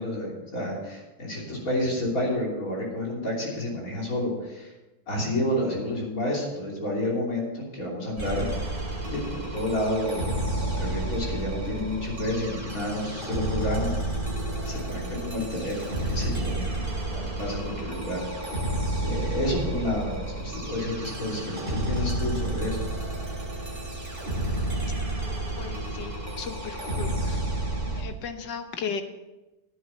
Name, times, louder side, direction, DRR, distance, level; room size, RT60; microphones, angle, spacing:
voice 1, 0.0-4.7 5.1-8.5 9.1-13.9 14.6-16.8 17.1-18.3 19.0-22.8, left 1 dB, 45° left, -3 dB, 3.5 m, -30 dB
sound 1, 8.2-28.0, right 1 dB, 25° right, 2.6 m, -31 dB
voice 2, 25.6-27.4 28.0-29.0, left 6 dB, 70° left, 8 dB, 1.6 m, -36 dB
10.0 x 10.0 x 5.6 m, 1.1 s
omnidirectional pair, 2.1 m